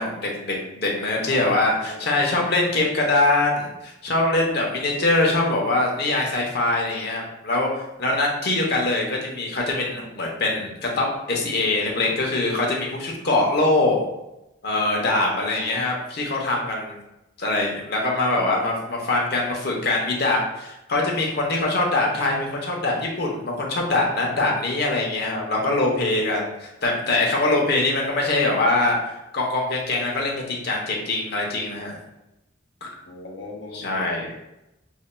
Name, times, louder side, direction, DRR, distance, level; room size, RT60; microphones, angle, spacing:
voice 1, 0.0-14.0 14.6-17.0 17.4-29.0 29.3-32.0 32.8-32.9 33.7-34.3, left 2 dB, 55° left, -1 dB, 0.9 m, -23 dB
voice 2, 1.3-2.0 15.0-15.8 33.1-34.4, left 1 dB, 70° left, -2 dB, 1.0 m, -38 dB
5.2 x 2.7 x 2.2 m, 0.92 s
head